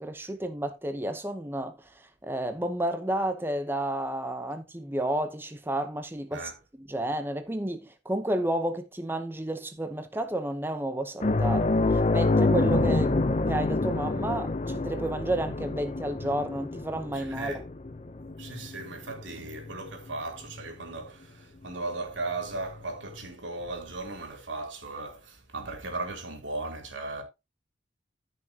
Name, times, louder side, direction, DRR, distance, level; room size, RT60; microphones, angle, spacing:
voice 1, 0.0-6.5 6.9-13.2 13.5-17.5, right 1 dB, 10° right, 0.8 m, -31 dB
sound 1, 11.2-20.2 20.5-20.7 22.7-22.8, left 2 dB, 35° left, 0.6 m, -27 dB
voice 2, 17.1-17.6 18.4-27.2, right 2 dB, 90° right, 3.4 m, -37 dB
14.5 x 6.1 x 2.8 m
head